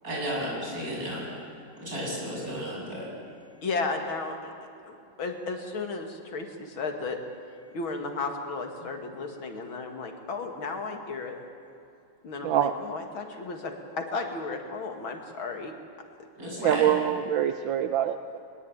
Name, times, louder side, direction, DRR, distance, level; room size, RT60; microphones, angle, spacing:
voice 1, 0.0-1.3 1.8-3.1 16.4-16.9, equal, 45° right, -4 dB, 8.2 m, -33 dB
voice 2, 3.6-4.4 4.8-7.2 7.7-11.4 12.2-15.7 16.6-16.8, left 3 dB, 85° left, 4 dB, 3.0 m, -34 dB
voice 3, 12.4-12.7 16.6-18.4, right 10 dB, 75° right, 8 dB, 1.5 m, -25 dB
22.5 x 21.0 x 8.9 m, 2.6 s
omnidirectional pair, 2.2 m